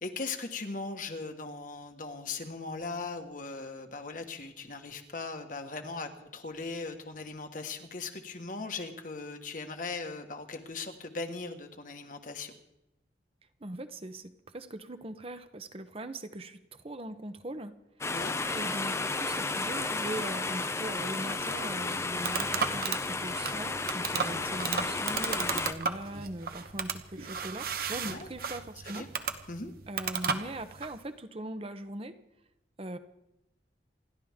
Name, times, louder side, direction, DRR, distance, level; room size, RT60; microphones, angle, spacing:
voice 1, 0.0-12.5 18.1-18.3 24.2-24.5 28.0-28.3 28.8-29.1 29.5-29.7, left 3 dB, 50° left, 6 dB, 1.6 m, -39 dB
voice 2, 13.6-17.7 18.5-29.0 29.9-32.2 32.8-33.0, right 1 dB, 35° right, 10 dB, 0.9 m, -40 dB
sound 1, 18.0-25.7, left 3 dB, 15° left, 0.6 m, -33 dB
sound 2, 21.5-31.0, right 6 dB, 55° right, 1.1 m, -35 dB
28.5 x 12.0 x 3.7 m, 0.87 s
head